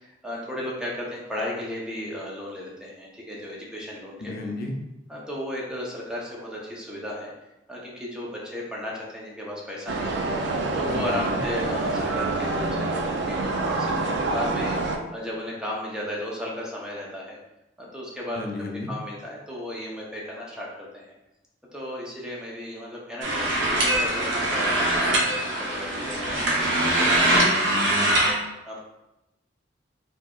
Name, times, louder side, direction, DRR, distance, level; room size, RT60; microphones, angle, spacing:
voice 1, 0.0-4.3 5.1-7.3 7.7-10.3 10.7-17.4 17.8-18.4 18.9-21.1 21.7-26.8 27.2-28.2 28.6-28.8, left 1 dB, 5° right, -4 dB, 0.6 m, -35 dB
voice 2, 4.2-4.7 10.9-11.4 18.4-18.9, left 2 dB, 55° left, 1 dB, 0.5 m, -33 dB
sound 1, 9.9-15.0, right 3 dB, 65° right, 0.4 m, -26 dB
sound 2, 23.2-28.3, right 1 dB, 90° right, 0.9 m, -22 dB
4.4 x 2.8 x 2.3 m, 0.93 s
head